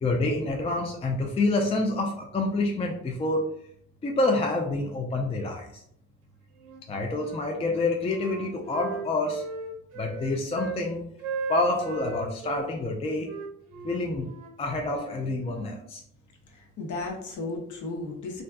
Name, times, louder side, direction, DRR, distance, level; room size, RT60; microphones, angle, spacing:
voice 1, 0.0-3.4 4.0-5.6 6.9-9.4 10.0-11.0 11.5-13.3 13.8-14.3 14.6-16.0, left 2 dB, 15° left, 1 dB, 0.4 m, -27 dB
Wind instrument woodwind instrument, 6.6-7.4 7.7-10.8 11.2-12.7 13.2-15.7, right 4 dB, 75° right, 0.7 m, -37 dB
voice 2, 16.5-18.4, left 3 dB, 45° left, 2 dB, 0.9 m, -35 dB
3.2 x 2.6 x 2.2 m, 0.70 s
hypercardioid pair, 45°, 42 cm